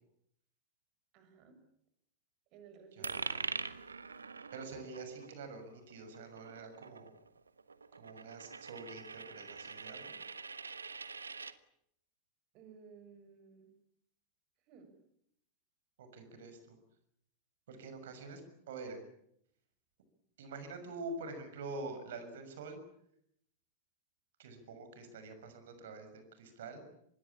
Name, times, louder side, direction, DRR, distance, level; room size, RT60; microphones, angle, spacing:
voice 1, 1.1-1.6 2.5-3.7 12.5-13.7 14.7-14.9, right 6 dB, 40° right, 8 dB, 6.5 m, -57 dB
voice 2, 2.9-3.5 4.5-7.1 7.9-10.1 16.0-16.8 17.7-18.4 18.7-19.0 20.4-22.8 24.4-26.8, right 3 dB, 60° right, 9 dB, 6.5 m, -46 dB
Coin (dropping), 3.0-11.6, right 4 dB, 75° right, 1.2 m, -44 dB
25.5 x 21.0 x 8.7 m, 0.74 s
figure-of-eight pair, 90°, 0 cm